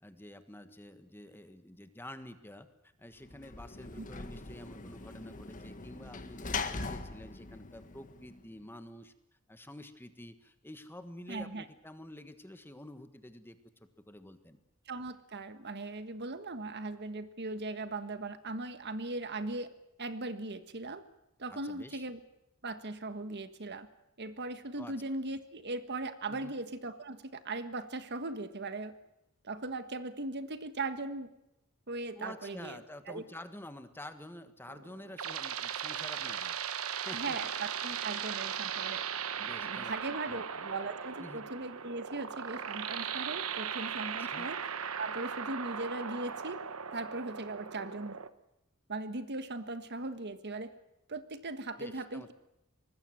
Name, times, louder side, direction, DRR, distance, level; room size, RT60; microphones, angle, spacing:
voice 1, 0.0-2.7 3.0-9.1 9.5-14.6 21.5-22.0 24.8-25.0 26.3-26.5 32.2-36.6 37.0-37.4 39.4-39.9 40.3-40.4 41.2-41.4 44.2-44.5 51.8-52.3, left 1 dB, 10° left, 9 dB, 1.5 m, -49 dB
Sliding door / Slam, 3.2-8.6, left 4 dB, 40° left, 1.6 m, -41 dB
voice 2, 11.3-11.6 14.9-19.7 20.0-21.0 21.4-22.2 22.6-23.9 24.2-28.9 29.4-31.3 31.9-32.8 33.1-33.2 37.1-39.0 39.4-44.6 45.0-46.6 46.9-48.1 48.9-50.7 51.1-52.3, right 2 dB, 50° right, 10 dB, 1.5 m, -39 dB
sound 1, 34.7-48.3, right 7 dB, 75° right, 1.3 m, -38 dB
24.5 x 20.0 x 7.7 m, 0.85 s
head